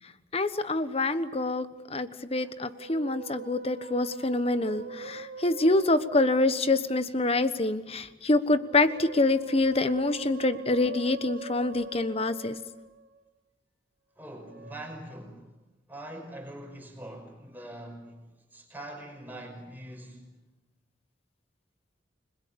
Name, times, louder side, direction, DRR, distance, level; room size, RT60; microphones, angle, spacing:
voice 1, 0.3-12.6, left 2 dB, 35° left, 1.2 m, -26 dB
Musical instrument, 2.4-7.1 8.4-13.2 14.3-14.8, right 4 dB, 70° right, 1.8 m, -42 dB
voice 2, 14.2-15.6 15.9-20.3, right 1 dB, 10° right, 5.7 m, -43 dB
30.0 x 21.5 x 7.1 m
head